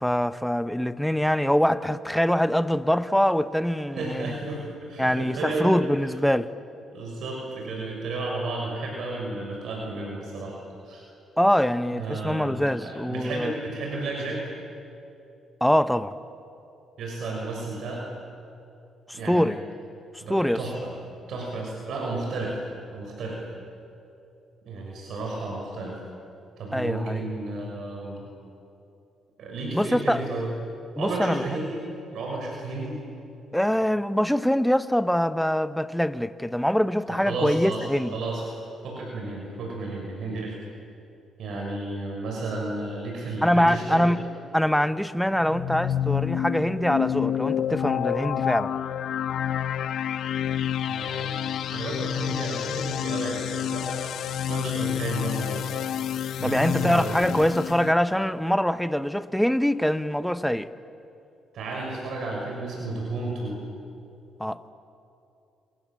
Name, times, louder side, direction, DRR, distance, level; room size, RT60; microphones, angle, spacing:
voice 1, 0.0-4.3 5.0-6.5 11.4-13.5 15.6-16.1 19.1-19.6 20.3-20.6 26.7-27.2 29.7-30.2 31.0-31.4 33.5-38.1 43.4-44.2 44.5-48.7 56.4-60.7 64.4-64.7, equal, 5° left, 12 dB, 1.0 m, -24 dB
voice 2, 3.9-5.7 6.0-6.1 6.9-10.6 10.8-11.0 11.9-14.4 17.0-18.0 19.1-19.5 20.2-20.9 21.3-22.6 22.9-23.4 24.7-26.0 26.6-28.3 29.4-30.5 31.0-31.8 32.1-33.0 37.1-38.6 38.8-40.6 41.4-44.1 50.9-55.6 56.4-57.2 61.5-63.6, right 2 dB, 70° right, -1 dB, 6.6 m, -32 dB
sound 1, 45.4-57.9, left 10 dB, 70° left, 0.8 m, -29 dB
28.0 x 27.0 x 7.7 m, 2.7 s
cardioid pair, 90°, 0 cm